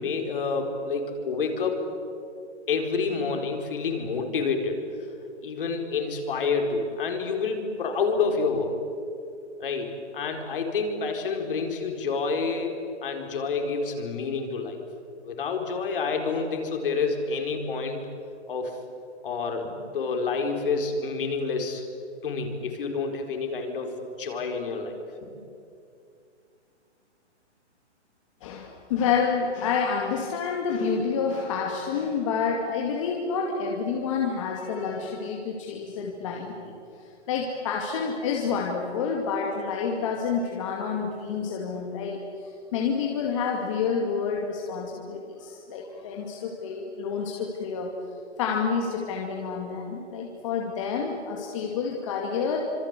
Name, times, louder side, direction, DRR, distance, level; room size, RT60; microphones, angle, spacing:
voice 1, 0.0-1.8 2.7-4.8 5.4-8.8 9.6-12.7 13.0-14.8 15.2-18.0 18.5-18.8 19.2-21.8 22.2-25.3, left 4 dB, 50° left, 4 dB, 4.6 m, -28 dB
voice 2, 28.4-47.9 48.4-52.6, left 5 dB, 25° left, 0 dB, 2.3 m, -29 dB
27.0 x 26.5 x 8.3 m, 2.5 s
hypercardioid pair, 170°, 35 cm